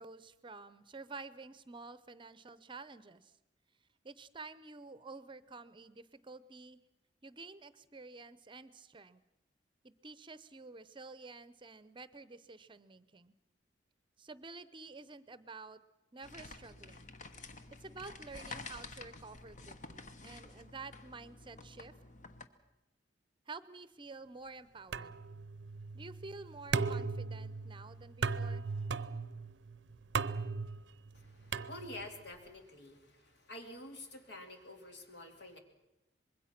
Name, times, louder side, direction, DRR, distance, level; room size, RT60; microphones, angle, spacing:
voice 1, 0.0-3.3 4.0-6.8 7.2-9.2 9.8-13.3 14.2-15.8 16.1-17.1 17.8-21.9 23.5-25.2 25.9-28.7, right 3 dB, 30° right, 15 dB, 0.7 m, -50 dB
sound 1, 16.2-22.5, left 3 dB, 45° left, 1.2 m, -50 dB
sound 2, 24.9-32.3, right 4 dB, 90° right, 0.7 m, -38 dB
voice 2, 31.1-35.6, left 1 dB, 65° left, 4 dB, 2.8 m, -49 dB
25.0 x 21.5 x 5.9 m, 0.99 s
head